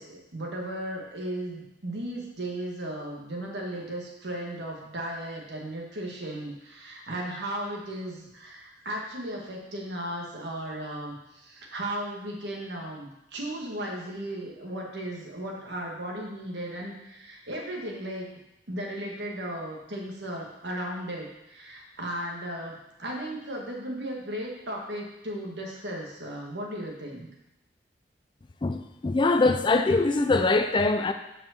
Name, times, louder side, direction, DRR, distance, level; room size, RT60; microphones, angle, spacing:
voice 1, 0.0-18.3 18.7-27.3, right 1 dB, 65° right, -1 dB, 1.7 m, -36 dB
voice 2, 28.6-31.1, left 3 dB, 25° left, 8 dB, 0.4 m, -23 dB
5.5 x 5.0 x 6.4 m, 0.89 s
head